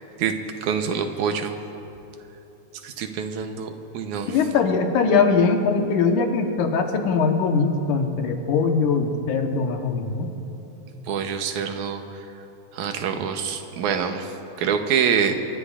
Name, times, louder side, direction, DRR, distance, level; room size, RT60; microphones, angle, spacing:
voice 1, 0.6-1.6 2.8-4.4 11.1-12.0 12.7-14.3 14.6-15.3, right 7 dB, 75° right, 6 dB, 2.3 m, -25 dB
voice 2, 4.3-10.3, left 5 dB, 85° left, 3 dB, 2.7 m, -21 dB
25.0 x 23.0 x 2.5 m, 3.0 s
omnidirectional pair, 3.5 m